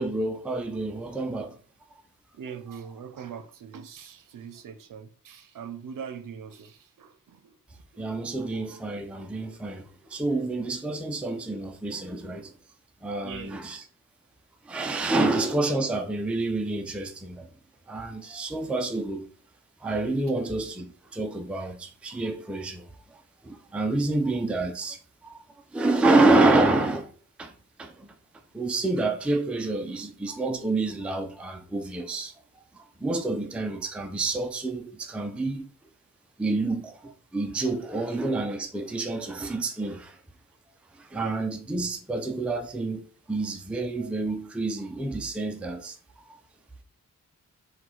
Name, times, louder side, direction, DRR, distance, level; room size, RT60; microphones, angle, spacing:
voice 1, 0.0-1.6 8.0-9.8 10.1-12.5 13.0-13.8 14.7-17.5 17.9-19.3 19.8-22.9 23.4-25.0 25.2-25.4 25.7-27.1 27.4-27.5 27.8-28.1 28.5-32.3 32.7-35.7 36.4-40.2 41.0-43.0 43.3-46.0, right 2 dB, 5° right, 0.4 m, -28 dB
voice 2, 2.3-7.5 7.9-8.0 8.4-8.5 13.2-13.5 15.0-15.1 24.1-24.2 41.1-41.4 44.0-44.1, right 7 dB, 75° right, 0.6 m, -42 dB
4.7 x 2.3 x 3.9 m
wide cardioid pair, 140°, 33 cm